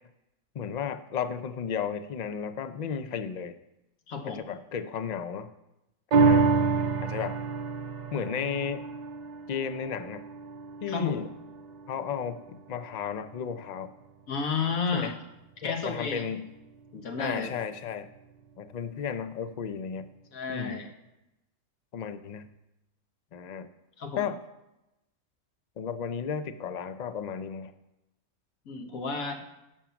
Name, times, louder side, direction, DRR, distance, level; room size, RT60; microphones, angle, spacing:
voice 1, 0.5-3.6 4.2-5.5 6.1-6.5 7.0-7.4 8.1-8.8 9.5-10.2 10.8-11.3 11.9-13.9 14.9-15.2 15.6-16.5 17.2-18.1 18.6-20.1 20.5-20.8 21.9-22.5 23.3-23.7 24.2-24.4 25.8-27.7, left 7 dB, 55° left, 11 dB, 0.4 m, -34 dB
voice 2, 4.1-4.4 10.9-11.2 14.3-15.1 15.6-16.3 16.9-17.5 20.3-20.9 24.0-24.2 28.7-29.4, left 5 dB, 80° left, 4 dB, 1.7 m, -32 dB
sound 1, 6.1-12.8 13.2-13.3, right 4 dB, 45° right, 0.6 m, -28 dB
11.0 x 5.9 x 7.0 m, 0.92 s
omnidirectional pair, 1.4 m